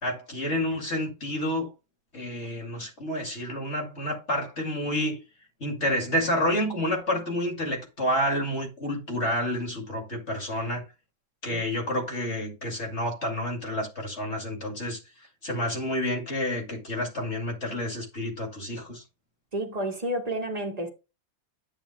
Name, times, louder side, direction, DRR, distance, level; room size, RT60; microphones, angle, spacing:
voice 1, 0.0-1.7 2.1-5.2 5.6-10.8 11.4-19.0, left 1 dB, 35° left, 2.5 m, -29 dB
voice 2, 19.5-20.9, right 1 dB, 20° right, 1.6 m, -30 dB
10.0 x 8.1 x 2.2 m
omnidirectional pair, 2.1 m